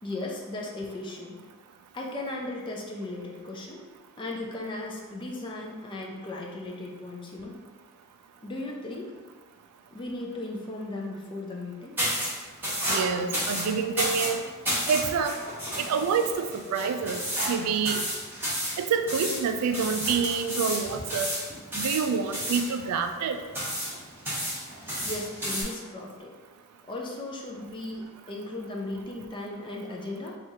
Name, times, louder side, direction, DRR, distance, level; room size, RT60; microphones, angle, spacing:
voice 1, 0.0-1.4 1.9-3.8 4.2-7.6 8.4-9.1 9.9-12.0 24.8-26.3 26.9-30.4, left 2 dB, 20° left, -1 dB, 0.4 m, -36 dB
sound 1, 12.0-25.6, equal, 10° right, 1.1 m, -32 dB
voice 2, 12.9-14.4 14.9-15.3 15.8-17.2 17.5-18.0 18.8-21.3 21.7-23.4, right 6 dB, 85° right, 11 dB, 0.3 m, -27 dB
4.4 x 2.4 x 2.7 m, 1.4 s
head